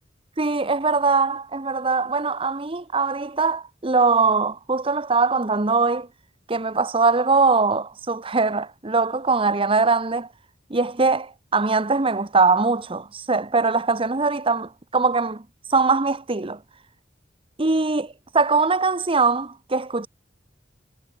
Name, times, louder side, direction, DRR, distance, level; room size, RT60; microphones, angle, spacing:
voice 1, 0.4-6.1 6.5-10.3 10.7-15.4 15.7-16.6 17.6-20.1, right 4 dB, 30° right, 1.1 m, -21 dB
head